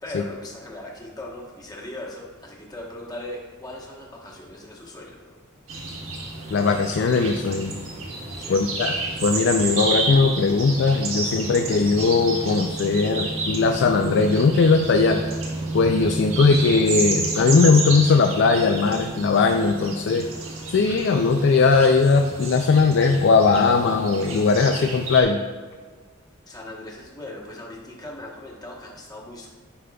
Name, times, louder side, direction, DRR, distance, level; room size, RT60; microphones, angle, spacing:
voice 1, 0.0-5.4 8.4-8.6 26.5-29.5, left 1 dB, 20° left, -2 dB, 1.1 m, -39 dB
sound 1, 5.7-25.2, right 3 dB, 80° right, 1.3 m, -30 dB
voice 2, 6.5-7.7 8.5-8.9 9.2-15.2 15.7-20.3 20.7-25.4, left 4 dB, 60° left, 5 dB, 0.4 m, -19 dB
10.0 x 5.1 x 2.3 m, 1.5 s
head